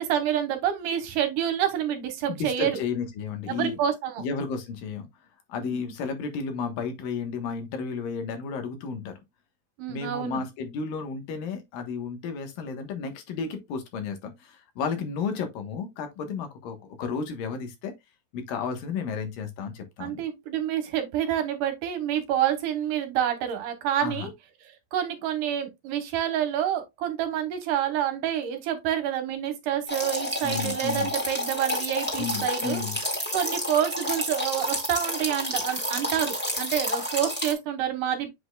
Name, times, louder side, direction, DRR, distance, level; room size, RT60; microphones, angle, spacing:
voice 1, 0.0-2.8 3.5-4.2 5.6-5.9 9.8-10.4 20.0-24.3 24.9-32.8 33.3-38.3, right 10 dB, 70° right, 2.6 m, -28 dB
voice 2, 2.2-3.8 4.2-5.1 5.5-9.2 9.9-17.9 18.3-20.2 24.0-24.3 30.4-31.1 32.2-33.0, left 5 dB, 75° left, 3.0 m, -32 dB
sound 1, 29.9-37.5, left 1 dB, 5° left, 1.4 m, -30 dB
7.7 x 6.0 x 2.3 m
omnidirectional pair, 4.0 m